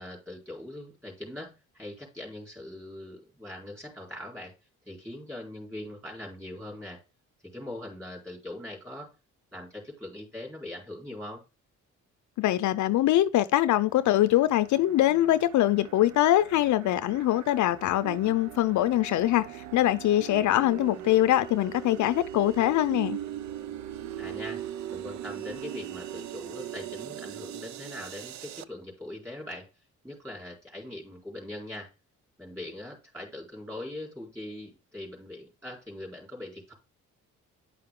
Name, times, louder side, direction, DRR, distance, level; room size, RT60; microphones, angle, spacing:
voice 1, 0.0-4.5 4.9-7.0 7.4-9.1 9.5-11.4 24.2-29.7 30.0-31.9 32.4-36.7, left 1 dB, 10° right, 4.1 m, -41 dB
voice 2, 12.4-23.2, left 14 dB, 75° left, 0.6 m, -23 dB
sound 1, 13.7-28.6, right 11 dB, 65° right, 0.6 m, -40 dB
10.0 x 5.7 x 3.7 m
cardioid pair, 90°, 30 cm